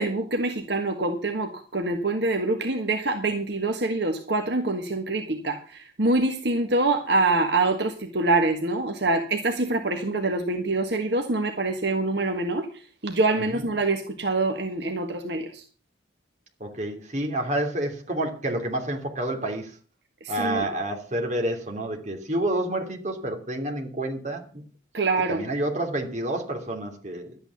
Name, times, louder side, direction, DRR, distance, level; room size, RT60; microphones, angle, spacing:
voice 1, 0.0-12.7 13.0-15.6 20.2-20.7 24.9-25.4, right 2 dB, 65° right, 4 dB, 1.6 m, -25 dB
voice 2, 16.6-19.7 20.3-24.6 25.3-27.4, right 1 dB, 40° right, 3 dB, 2.9 m, -29 dB
12.5 x 9.1 x 7.0 m, 0.39 s
head